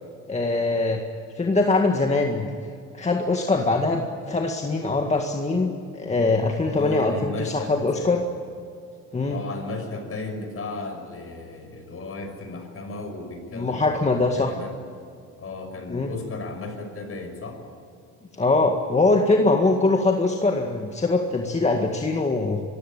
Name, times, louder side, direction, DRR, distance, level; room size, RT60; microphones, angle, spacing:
voice 1, 0.3-1.0 1.4-2.5 2.9-8.2 9.1-9.4 13.5-14.5 15.9-16.1 18.4-22.6, left 3 dB, 20° left, 2 dB, 1.9 m, -22 dB
voice 2, 6.6-8.2 9.3-14.0 14.3-14.8 15.4-17.6, left 3 dB, 45° left, 5 dB, 6.2 m, -35 dB
24.0 x 16.0 x 9.0 m, 2.4 s
cardioid pair, 100°, 32 cm